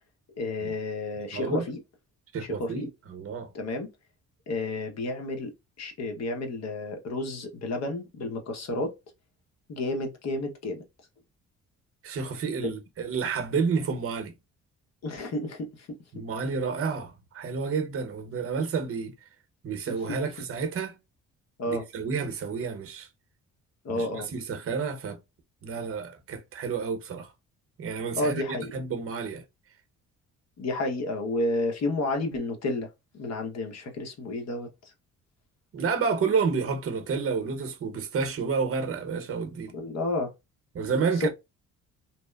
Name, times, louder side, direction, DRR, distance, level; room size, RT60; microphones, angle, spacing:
voice 1, 0.3-1.8 2.4-2.9 3.5-3.9 4.5-5.5 5.8-8.9 9.7-10.8 15.0-16.2 19.9-20.5 21.6-21.9 23.8-24.3 28.2-28.7 30.6-32.9 33.1-34.7 39.7-40.3 40.8-41.3, left 2 dB, 60° left, 0.9 m, -31 dB
voice 2, 1.3-1.6 2.3-3.5 12.0-14.3 16.1-19.1 19.6-21.0 21.7-23.1 23.9-25.2 25.6-27.3 27.8-28.4 28.7-29.4 35.7-39.7 40.7-41.3, right 5 dB, 50° right, 0.7 m, -30 dB
2.8 x 2.0 x 2.2 m
cardioid pair, 90°, 30 cm